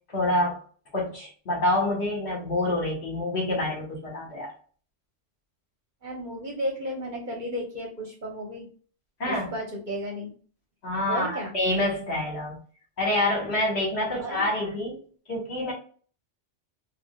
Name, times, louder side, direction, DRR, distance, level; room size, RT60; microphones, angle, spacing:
voice 1, 0.1-0.6 0.9-4.5 9.2-9.6 10.8-12.6 13.0-15.0 15.3-15.7, left 1 dB, 65° left, -3 dB, 1.8 m, -27 dB
voice 2, 6.0-8.7 9.3-10.3 11.1-11.5 14.1-14.8, equal, 45° right, -1 dB, 1.0 m, -34 dB
4.7 x 2.5 x 2.2 m, 0.43 s
omnidirectional pair, 1.2 m